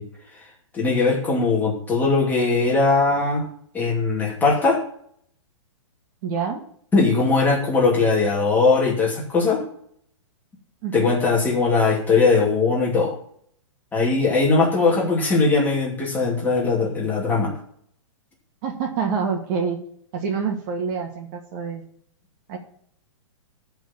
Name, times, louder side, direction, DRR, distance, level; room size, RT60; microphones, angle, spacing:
voice 1, 0.7-3.5 3.7-4.8 6.9-9.6 10.9-13.1 13.9-17.6, left 4 dB, 10° left, -3 dB, 2.6 m, -20 dB
voice 2, 6.2-6.6 10.8-11.1 18.6-19.8 20.1-21.8 22.5-22.6, right 6 dB, 35° right, 4 dB, 2.1 m, -26 dB
13.5 x 4.6 x 7.4 m, 0.64 s
hypercardioid pair, 155°, 16 cm